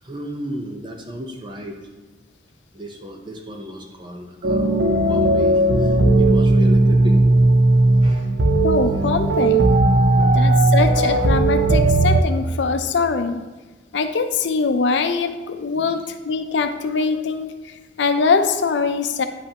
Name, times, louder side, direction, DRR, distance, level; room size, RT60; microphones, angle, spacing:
voice 1, 0.0-1.8 2.7-4.8 5.1-7.2 8.0-8.3 10.1-10.5, equal, 25° right, 2 dB, 0.7 m, -34 dB
sound 1, 4.4-12.2, right 2 dB, 85° right, 0.7 m, -16 dB
voice 2, 8.6-9.7 10.3-13.4 13.9-19.2, left 4 dB, 80° left, 8 dB, 0.5 m, -22 dB
9.8 x 5.5 x 2.9 m, 1.2 s
head